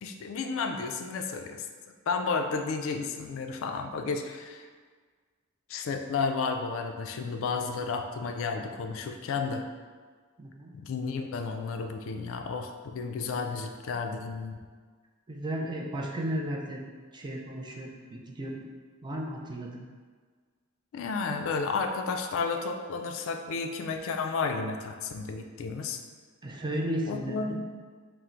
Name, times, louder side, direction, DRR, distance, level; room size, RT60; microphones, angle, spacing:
voice 1, 0.0-1.7 2.1-4.7 5.7-9.6 10.7-14.6 20.9-26.0 27.1-27.7, left 4 dB, 65° left, 5 dB, 0.3 m, -32 dB
voice 2, 10.4-10.7 15.3-16.8 17.1-18.7 19.0-19.9 26.4-27.6, right 1 dB, 20° right, 0 dB, 0.4 m, -34 dB
3.7 x 2.0 x 4.3 m, 1.5 s
head